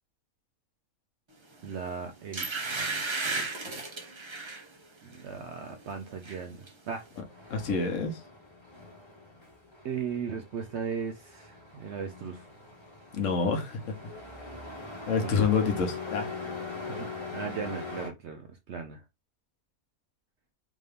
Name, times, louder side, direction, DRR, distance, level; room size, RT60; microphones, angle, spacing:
sound 1, 1.6-1.8 2.3-4.6 5.1-5.3 5.7-6.4 6.7-6.8, right 3 dB, 40° right, 0.4 m, -34 dB
voice 1, 1.6-3.7 5.0-7.1 7.4-7.5 9.8-12.5 15.2-15.4 16.9-19.0, right 6 dB, 65° right, 0.7 m, -38 dB
Truck, 7.0-18.1, left 4 dB, 20° left, 0.9 m, -42 dB
voice 2, 7.5-8.2 13.1-13.8 15.1-16.3, left 5 dB, 65° left, 1.1 m, -27 dB
3.7 x 2.6 x 3.2 m
omnidirectional pair, 1.5 m